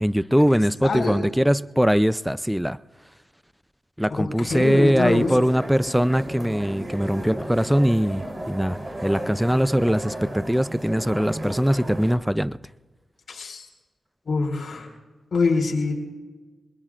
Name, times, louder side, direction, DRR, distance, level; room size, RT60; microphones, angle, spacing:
voice 1, 0.0-2.8 4.0-12.6, equal, 5° right, 17 dB, 0.5 m, -21 dB
voice 2, 0.8-1.3 4.2-5.4 13.3-13.6 14.2-14.9 15.3-15.9, left 4 dB, 65° left, 0 dB, 4.6 m, -24 dB
sound 1, 4.5-12.2, right 1 dB, 25° right, 3.6 m, -34 dB
24.0 x 21.5 x 2.5 m, 1.3 s
cardioid pair, 55°, 0 cm